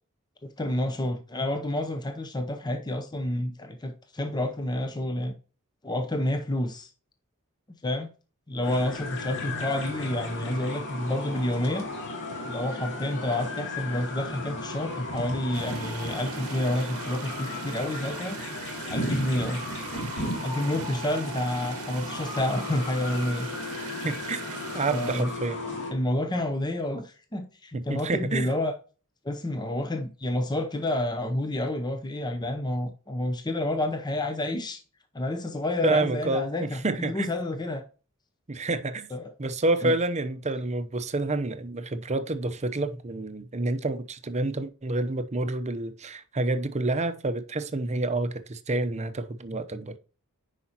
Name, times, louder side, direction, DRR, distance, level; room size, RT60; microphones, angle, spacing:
voice 1, 0.4-5.3 5.8-6.9 7.8-8.1 8.5-11.9 12.4-18.4 18.9-19.6 20.4-23.5 24.9-25.3 25.9-28.7 29.2-34.8 35.1-37.8 39.1-39.3 39.8-39.9, left 1 dB, 20° left, 0.7 m, -29 dB
sound 1, 8.6-25.9, left 2 dB, 60° left, 2.7 m, -35 dB
sound 2, 15.5-25.2, right 8 dB, 80° right, 1.0 m, -43 dB
voice 2, 24.0-25.6 27.7-28.5 35.8-37.3 38.5-39.1 39.4-50.0, right 2 dB, 30° right, 0.7 m, -28 dB
10.0 x 5.0 x 2.9 m
head